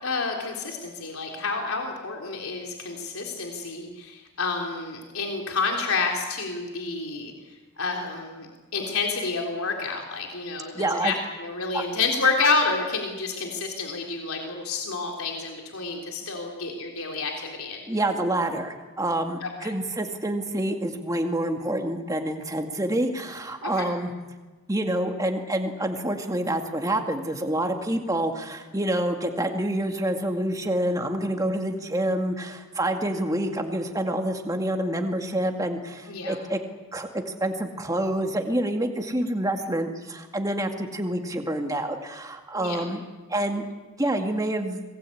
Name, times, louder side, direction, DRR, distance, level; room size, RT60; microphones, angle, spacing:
voice 1, 0.0-17.9 19.4-19.7 23.6-23.9 36.1-36.4 42.5-42.8, left 4 dB, 80° left, 1 dB, 3.6 m, -29 dB
voice 2, 10.7-11.1 11.7-11.8 17.9-24.1 24.7-36.6 36.9-43.0 43.3-43.6 44.0-44.8, right 1 dB, 15° right, 4 dB, 2.1 m, -27 dB
26.5 x 20.0 x 8.6 m, 1.3 s
head